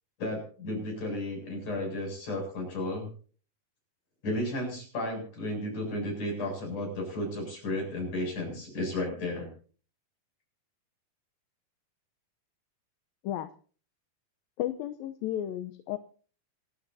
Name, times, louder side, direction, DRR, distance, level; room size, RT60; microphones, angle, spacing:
voice 1, 0.2-3.1 4.2-9.5, left 1 dB, 55° left, 1 dB, 9.1 m, -33 dB
voice 2, 14.6-16.0, left 12 dB, 80° left, 10 dB, 2.5 m, -33 dB
27.0 x 12.0 x 2.8 m, 0.41 s
omnidirectional pair, 4.2 m